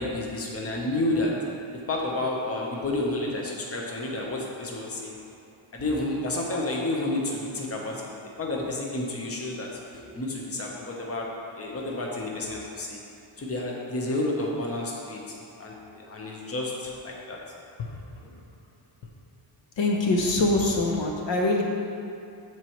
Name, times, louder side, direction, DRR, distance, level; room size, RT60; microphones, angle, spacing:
voice 1, 0.0-1.3 1.9-5.2 5.7-8.1 8.4-11.2 11.6-13.0 13.4-17.4, left 2 dB, 30° left, -2 dB, 0.9 m, -30 dB
voice 2, 19.8-21.6, left 2 dB, 60° left, 0 dB, 0.8 m, -23 dB
13.5 x 4.6 x 3.1 m, 2.7 s
wide cardioid pair, 180°, 50 cm